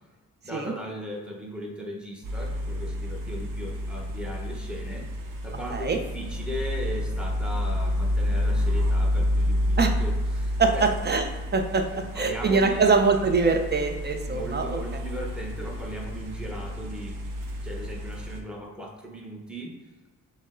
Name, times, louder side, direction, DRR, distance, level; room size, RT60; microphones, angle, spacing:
voice 1, 0.4-5.1 5.4-10.9 11.9-13.0 14.2-17.2 17.6-19.7, equal, 5° right, -1 dB, 0.8 m, -38 dB
sound 1, 2.2-18.4, left 1 dB, 65° right, 0.8 m, -29 dB
voice 2, 10.6-11.2 11.5-11.8 12.1-14.8, right 4 dB, 30° right, 5 dB, 0.5 m, -23 dB
6.1 x 2.1 x 3.7 m, 1.3 s
wide cardioid pair, 115°, 36 cm